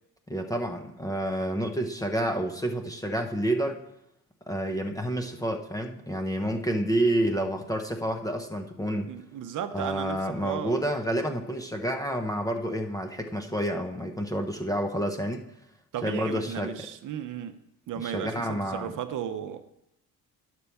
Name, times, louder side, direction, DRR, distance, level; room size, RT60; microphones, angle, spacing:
voice 1, 0.3-3.8 4.5-9.1 9.7-15.4 16.0-16.9 18.0-18.9, right 1 dB, 10° left, 0.5 m, -29 dB
voice 2, 9.1-10.8 15.9-17.6 17.9-19.6, right 9 dB, 55° right, 0.7 m, -35 dB
10.0 x 4.5 x 6.9 m
cardioid pair, 160°, 38 cm